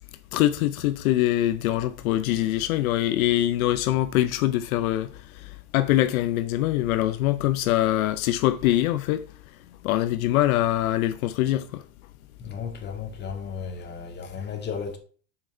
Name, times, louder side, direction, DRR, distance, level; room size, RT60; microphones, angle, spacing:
voice 1, 0.3-5.1 5.4-9.3 9.8-11.8, left 14 dB, 80° left, 0.7 m, -23 dB
voice 2, 12.4-15.0, left 6 dB, 25° left, 1.8 m, -34 dB
5.9 x 4.4 x 6.4 m
supercardioid pair, 130°, 42 cm